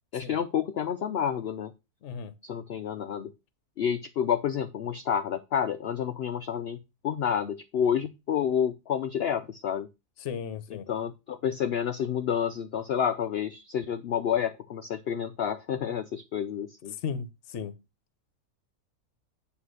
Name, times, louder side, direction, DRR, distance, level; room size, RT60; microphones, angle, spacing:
voice 1, 0.1-1.7 2.4-3.3 3.8-9.9 10.7-16.9, left 8 dB, 80° left, 0.5 m, -29 dB
voice 2, 2.0-2.3 10.2-10.9 17.0-17.7, left 6 dB, 55° left, 1.0 m, -35 dB
9.4 x 3.3 x 6.4 m
omnidirectional pair, 1.6 m